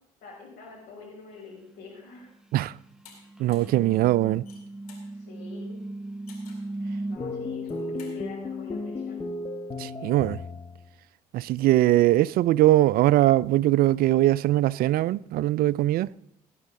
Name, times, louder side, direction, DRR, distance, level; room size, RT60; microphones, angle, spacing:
voice 1, 0.2-2.3 5.1-5.8 7.1-9.2, left 4 dB, 65° left, 5.7 m, -45 dB
sound 1, 1.8-2.0 2.9-7.2, right 2 dB, 5° right, 0.7 m, -37 dB
sound 2, 3.0-3.2 3.5-3.8 4.3-5.1 6.3-6.7 7.5-8.2, left 6 dB, 90° left, 2.3 m, -51 dB
voice 2, 3.4-4.4 9.8-10.4 11.3-16.1, right 15 dB, 55° right, 0.4 m, -21 dB
sound 3, 7.2-10.9, left 3 dB, 25° left, 1.2 m, -34 dB
17.5 x 9.3 x 3.7 m
hypercardioid pair, 55°, 19 cm